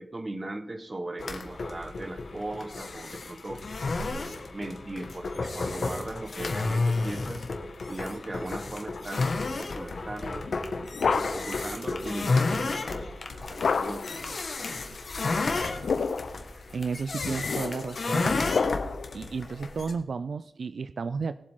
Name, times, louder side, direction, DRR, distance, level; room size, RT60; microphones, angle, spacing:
voice 1, 0.0-3.7 4.1-7.5 7.9-10.5 11.1-13.1 13.5-14.5, right 2 dB, 30° right, 10 dB, 1.2 m, -38 dB
sound 1, 1.2-19.9, left 3 dB, 60° left, 1.6 m, -32 dB
sound 2, 10.4-11.6 13.6-14.2 15.6-16.4 17.2-19.1, left 5 dB, 75° left, 0.7 m, -29 dB
voice 2, 16.7-18.3 19.1-21.4, right 5 dB, 70° right, 14 dB, 0.4 m, -32 dB
20.5 x 7.5 x 3.7 m, 0.85 s
wide cardioid pair, 80°, 0 cm